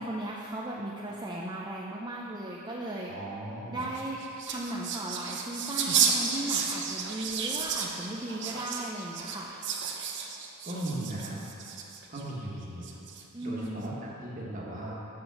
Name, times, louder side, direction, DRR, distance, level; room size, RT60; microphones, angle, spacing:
voice 1, 0.0-3.1 3.7-4.2 4.4-9.5 13.3-13.9, right 1 dB, 20° right, -4 dB, 0.5 m, -36 dB
voice 2, 3.1-3.8 10.6-11.4 12.1-13.0 13.4-14.9, right 1 dB, 35° right, -5 dB, 1.6 m, -37 dB
sound 1, 3.8-12.2 12.8-13.4, right 6 dB, 55° right, 0.7 m, -32 dB
7.5 x 6.0 x 6.3 m, 2.7 s
head